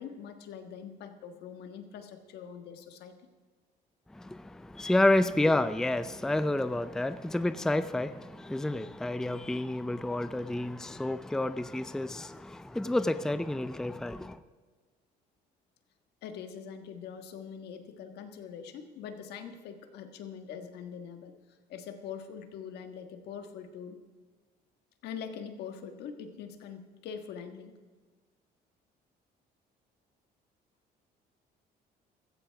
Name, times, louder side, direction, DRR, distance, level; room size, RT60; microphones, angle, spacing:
voice 1, 0.0-3.2 16.2-24.0 25.0-27.7, left 7 dB, 75° left, 1.5 m, -43 dB
voice 2, 4.1-14.4, left 1 dB, 5° left, 0.4 m, -29 dB
16.0 x 14.0 x 3.5 m
cardioid pair, 110°, 17 cm